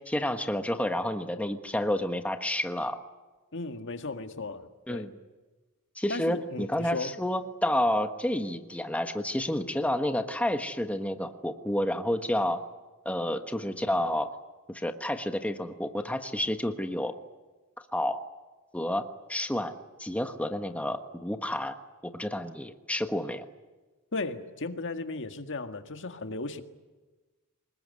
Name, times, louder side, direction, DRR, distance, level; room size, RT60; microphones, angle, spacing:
voice 1, 0.1-3.0 4.9-5.1 6.0-12.6 13.0-14.3 14.7-17.1 17.9-18.2 18.7-19.7 20.0-21.8 22.2-23.5, left 1 dB, 5° left, 6 dB, 1.3 m, -30 dB
voice 2, 3.5-5.1 6.1-7.2 24.1-26.6, left 3 dB, 60° left, 7 dB, 1.8 m, -36 dB
25.5 x 21.5 x 9.5 m, 1.2 s
head